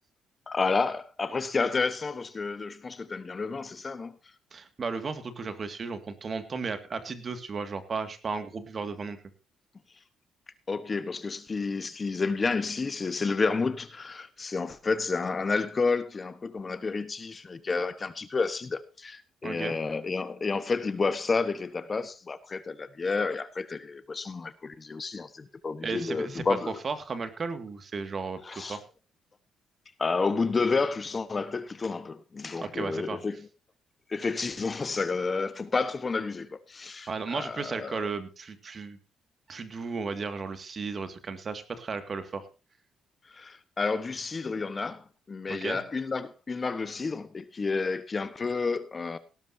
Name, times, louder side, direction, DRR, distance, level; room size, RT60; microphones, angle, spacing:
voice 1, 0.5-4.2 10.7-26.7 28.4-28.8 30.0-33.5 34.1-38.1 43.3-49.2, left 4 dB, 30° left, 1.2 m, -30 dB
voice 2, 4.5-9.2 19.4-19.8 25.8-28.8 32.6-33.2 37.1-39.0 39.5-42.5 45.5-45.8, right 4 dB, 40° right, 2.1 m, -34 dB
18.0 x 12.5 x 2.8 m
cardioid pair, 90°, 0 cm